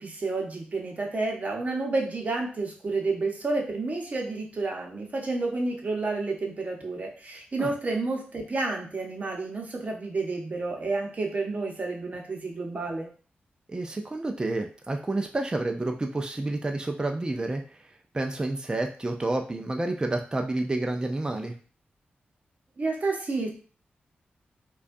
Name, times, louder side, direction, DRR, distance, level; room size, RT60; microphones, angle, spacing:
voice 1, 0.0-13.1 22.8-23.5, right 3 dB, 40° right, 1 dB, 0.9 m, -30 dB
voice 2, 13.7-17.6 18.1-21.5, right 2 dB, 20° right, 4 dB, 0.5 m, -29 dB
5.0 x 2.4 x 2.6 m, 0.40 s
wide cardioid pair, 100°, 4 cm